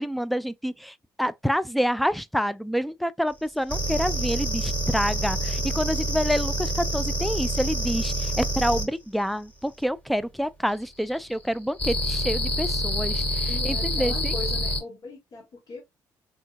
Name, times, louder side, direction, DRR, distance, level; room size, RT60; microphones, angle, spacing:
voice 1, 0.0-14.3, equal, ahead, 0.3 m, -27 dB
sound 1, 3.7-8.9 11.8-14.8, equal, 15° left, 1.7 m, -27 dB
voice 2, 13.5-15.8, left 3 dB, 60° left, 1.7 m, -39 dB
3.7 x 2.7 x 2.2 m
cardioid pair, 75°, 8 cm